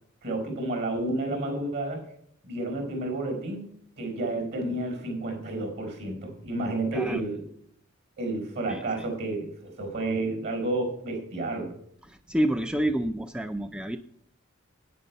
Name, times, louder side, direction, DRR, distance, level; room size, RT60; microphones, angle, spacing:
voice 1, 0.2-2.0 2.4-3.6 4.0-7.4 8.2-11.7, right 2 dB, 55° right, 3 dB, 4.7 m, -30 dB
voice 2, 8.7-9.0 12.1-14.0, right 1 dB, 5° right, 9 dB, 0.4 m, -29 dB
9.1 x 9.1 x 5.6 m, 0.65 s
head